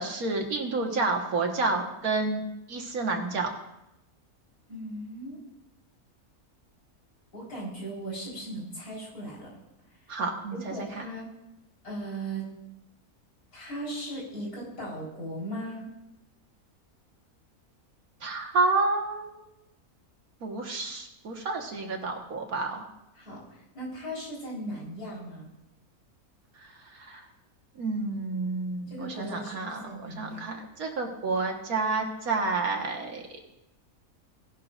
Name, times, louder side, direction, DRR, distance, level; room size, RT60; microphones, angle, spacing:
voice 1, 0.0-2.4 2.7-3.5 10.1-10.9 18.2-19.4 20.4-22.9 27.0-27.2 27.8-33.2, right 3 dB, 75° right, 2 dB, 1.9 m, -29 dB
voice 2, 4.7-5.4 7.3-9.5 10.5-11.3 11.8-12.5 13.5-15.9 23.1-25.5 28.9-30.5, right 1 dB, 80° left, -4 dB, 4.8 m, -38 dB
17.5 x 11.5 x 2.5 m, 0.87 s
omnidirectional pair, 1.6 m